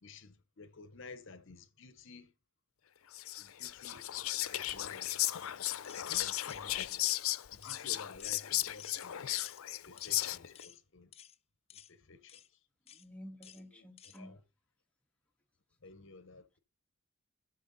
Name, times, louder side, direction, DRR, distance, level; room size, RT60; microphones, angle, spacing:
voice 1, 0.0-2.3 3.4-5.3 6.1-7.2 7.5-9.3 9.8-11.1 11.7-12.6 13.7-13.9 14.2-14.4 15.8-16.6, left 3 dB, 60° left, 0.9 m, -53 dB
Whispering, 3.1-10.6, left 15 dB, 80° left, 0.5 m, -35 dB
sound 1, 5.8-6.0 6.4-6.6 7.0-7.2 7.6-7.9 8.2-8.4 8.8-9.0 9.4-9.6 10.0-10.2 10.5-10.8 11.1-11.4 11.7-11.9 12.3-12.5 12.9-13.1 13.4-13.6 14.0-14.2, left 10 dB, 30° left, 0.4 m, -54 dB
voice 2, 12.9-14.4, equal, 5° left, 1.6 m, -51 dB
12.0 x 6.5 x 4.0 m
head